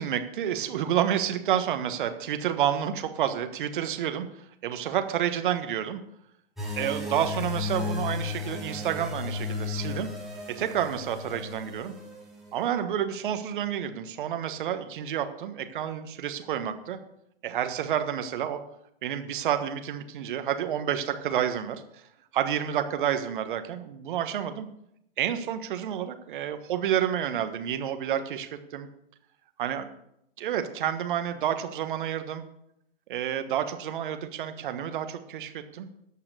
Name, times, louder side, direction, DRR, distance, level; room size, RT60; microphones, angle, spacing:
voice 1, 0.0-4.3 4.6-6.0 6.7-10.1 10.6-11.9 12.5-17.0 17.4-18.6 19.0-22.0 22.3-24.7 25.2-28.9 29.6-29.9 30.4-32.4 33.1-35.9, right 10 dB, 55° right, 8 dB, 1.4 m, -29 dB
sound 1, 6.6-12.5, left 3 dB, ahead, 2.8 m, -34 dB
14.0 x 5.7 x 6.7 m, 0.78 s
figure-of-eight pair, 110°, 30 cm